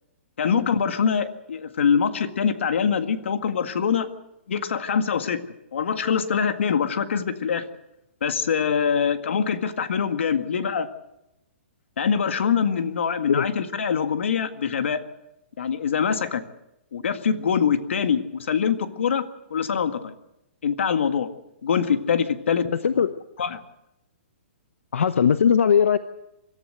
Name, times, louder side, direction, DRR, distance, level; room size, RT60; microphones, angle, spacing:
voice 1, 0.4-4.1 4.5-5.4 5.7-7.7 8.2-10.9 12.0-15.0 15.6-16.4 16.9-19.2 19.5-20.1 20.6-21.3 21.6-22.7 23.0-23.1 23.4-23.6, left 7 dB, 70° left, 9 dB, 1.8 m, -24 dB
voice 2, 22.7-23.1 24.9-26.0, left 7 dB, 90° left, 12 dB, 0.9 m, -19 dB
25.0 x 13.5 x 7.9 m, 0.87 s
hypercardioid pair, 170°, 7 cm